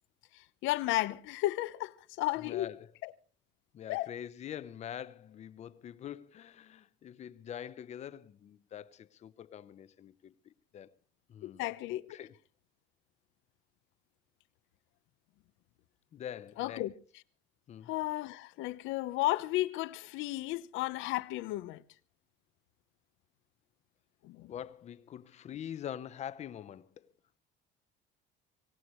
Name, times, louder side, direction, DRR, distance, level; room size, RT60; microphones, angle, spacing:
voice 1, 0.6-2.7 3.0-3.1 3.9-4.1 11.4-12.1 16.6-16.9 17.9-21.8 24.2-24.5, left 17 dB, 85° left, 0.9 m, -33 dB
voice 2, 2.4-2.9 3.7-10.9 11.3-11.7 12.1-12.3 16.1-16.9 17.7-17.9 24.5-27.1, left 10 dB, 35° left, 0.8 m, -44 dB
24.5 x 18.0 x 3.1 m
cardioid pair, 175°, 19 cm